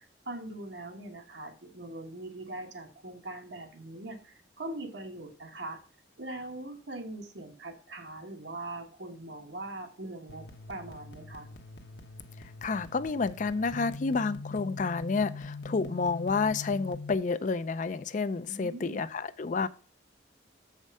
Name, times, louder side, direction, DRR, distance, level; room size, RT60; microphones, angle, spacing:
voice 1, 0.0-5.8 6.2-11.5 18.5-19.0, right 2 dB, 75° right, 4 dB, 1.4 m, -41 dB
sound 1, 10.3-17.1, left 3 dB, 65° left, 1.0 m, -43 dB
voice 2, 12.6-19.7, left 4 dB, 45° left, 13 dB, 0.4 m, -30 dB
7.3 x 5.1 x 5.4 m, 0.40 s
head